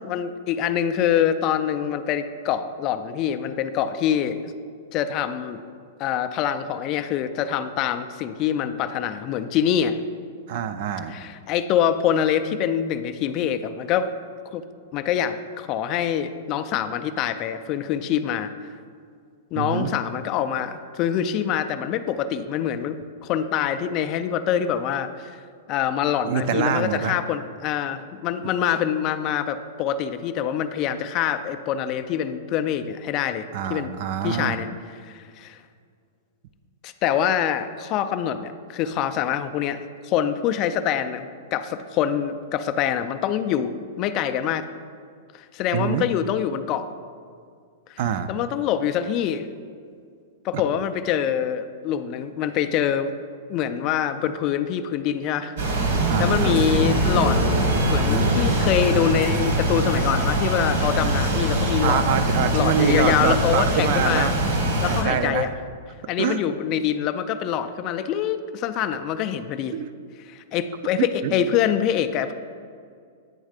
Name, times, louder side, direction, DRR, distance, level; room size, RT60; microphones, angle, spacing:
voice 1, 0.0-4.4 4.9-5.6 6.0-10.0 11.1-14.1 14.5-14.6 14.9-18.5 19.5-25.3 25.7-33.9 34.2-34.7 35.1-35.6 36.8-43.7 44.0-44.6 45.3-46.9 48.3-49.5 50.4-53.1 53.5-55.6 56.2-57.4 57.8-62.0 62.5-64.3 64.8-65.5 66.1-69.7 70.3-72.3, left 9 dB, 35° left, 10 dB, 0.3 m, -25 dB
voice 2, 10.5-11.2 19.6-19.9 26.2-27.2 33.5-34.6 45.7-46.1 48.0-48.3 50.5-50.6 56.1-56.6 61.8-64.5 64.9-65.5 66.2-66.4 69.7-69.9 71.2-71.4, right 8 dB, 50° right, 11 dB, 0.4 m, -25 dB
sound 1, 55.6-65.0, right 1 dB, 65° right, 1.4 m, -22 dB
8.9 x 3.2 x 5.0 m, 2.2 s
supercardioid pair, 150°, 0 cm